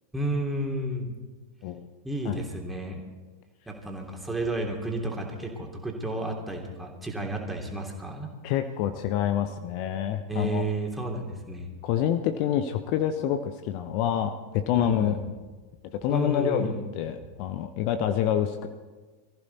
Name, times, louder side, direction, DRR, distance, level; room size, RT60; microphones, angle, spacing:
voice 1, 0.1-1.1 2.0-3.0 3.7-8.3 10.3-11.7 14.7-15.2 16.1-16.9, right 1 dB, 5° right, 0 dB, 2.9 m, -31 dB
voice 2, 8.4-10.6 11.8-15.2 16.0-18.7, left 10 dB, 45° left, 9 dB, 0.8 m, -27 dB
23.0 x 14.5 x 4.1 m, 1.3 s
figure-of-eight pair, 90°, 0 cm